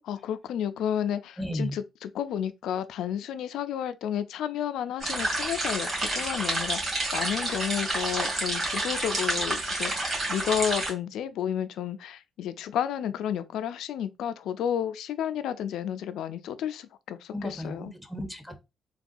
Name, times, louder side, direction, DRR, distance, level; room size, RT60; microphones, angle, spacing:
voice 1, 0.1-17.9, left 9 dB, 80° left, 0.3 m, -31 dB
voice 2, 1.4-1.7 17.3-18.6, equal, ahead, 0.6 m, -34 dB
sound 1, 5.0-10.9, right 2 dB, 35° right, 1.9 m, -29 dB
3.5 x 2.3 x 2.5 m
cardioid pair, 90°, 0 cm